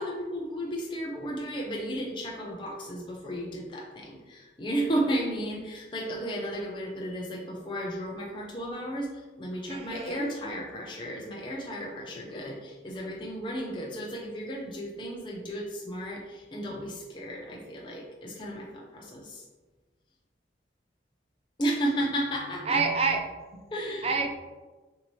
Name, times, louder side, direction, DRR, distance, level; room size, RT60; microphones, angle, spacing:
voice 1, 0.0-19.4 21.6-22.8 23.7-24.1, right 1 dB, 25° left, -1 dB, 0.5 m, -33 dB
voice 2, 9.7-10.3 22.7-23.2 24.0-24.3, right 4 dB, 30° right, 4 dB, 0.4 m, -27 dB
6.2 x 2.7 x 3.0 m, 1.3 s
head